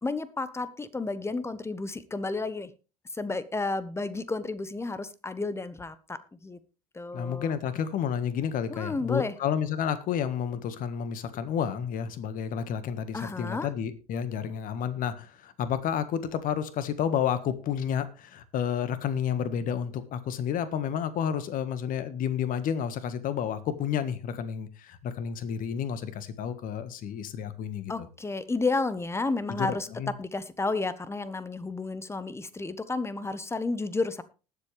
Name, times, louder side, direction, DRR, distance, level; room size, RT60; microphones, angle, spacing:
voice 1, 0.0-2.7 3.1-6.6 6.9-7.6 8.7-9.3 13.1-13.7 27.9-29.9 30.2-34.2, left 3 dB, 15° left, 15 dB, 1.2 m, -31 dB
voice 2, 7.1-27.9 29.5-30.1, left 8 dB, 45° left, 13 dB, 1.6 m, -30 dB
19.5 x 7.5 x 3.4 m, 0.33 s
hypercardioid pair, 70°, 19 cm